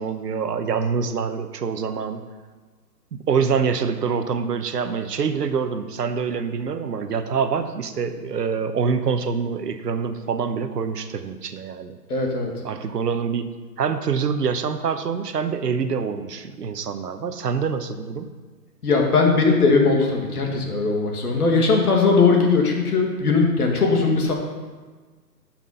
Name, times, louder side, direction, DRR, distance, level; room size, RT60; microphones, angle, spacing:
voice 1, 0.0-2.2 3.1-12.0 12.6-13.5 13.8-18.3, right 6 dB, 70° right, 9 dB, 1.0 m, -25 dB
voice 2, 12.1-12.5 18.8-24.3, left 4 dB, 65° left, 1 dB, 2.2 m, -19 dB
9.9 x 6.1 x 5.5 m, 1.4 s
hypercardioid pair, 170°, 50 cm